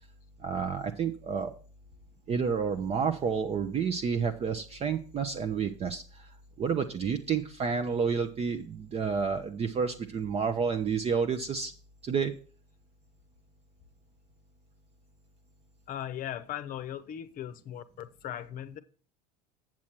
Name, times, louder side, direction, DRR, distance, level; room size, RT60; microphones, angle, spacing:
voice 1, 0.4-1.5 2.3-11.7 12.0-12.4, right 6 dB, 30° right, 0.7 m, -30 dB
voice 2, 15.9-18.8, left 10 dB, 40° left, 0.8 m, -38 dB
7.4 x 7.3 x 4.4 m
hypercardioid pair, 90°, 21 cm